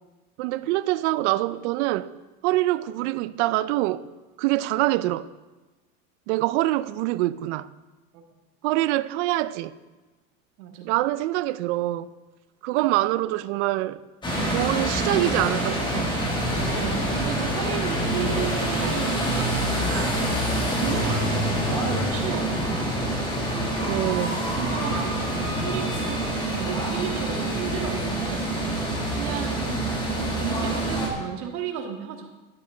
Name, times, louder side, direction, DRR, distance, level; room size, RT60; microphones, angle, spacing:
voice 1, 0.4-2.1 2.4-4.1 4.4-5.3 6.3-7.7 8.6-9.7 10.8-12.1 12.6-14.0 14.5-16.1 23.9-24.4, right 16 dB, 55° right, 0.5 m, -25 dB
voice 2, 10.6-10.9 13.2-13.3 16.7-20.2 20.7-22.5 24.5-28.8 29.1-32.3, right 8 dB, 80° right, 1.9 m, -34 dB
sound 1, 14.2-31.1, right 1 dB, 10° left, 1.6 m, -26 dB
12.0 x 9.4 x 3.8 m
supercardioid pair, 165°, 43 cm